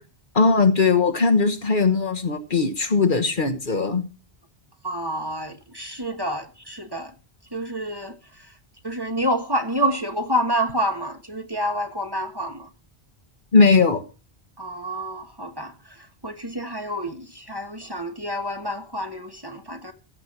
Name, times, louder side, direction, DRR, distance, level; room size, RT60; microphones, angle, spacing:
voice 1, 0.3-4.0 13.5-14.0, left 4 dB, 50° left, 1.4 m, -19 dB
voice 2, 4.8-7.1 7.5-8.5 8.8-12.7 14.6-19.9, equal, 20° right, 1.3 m, -28 dB
15.5 x 7.2 x 6.0 m
omnidirectional pair, 1.1 m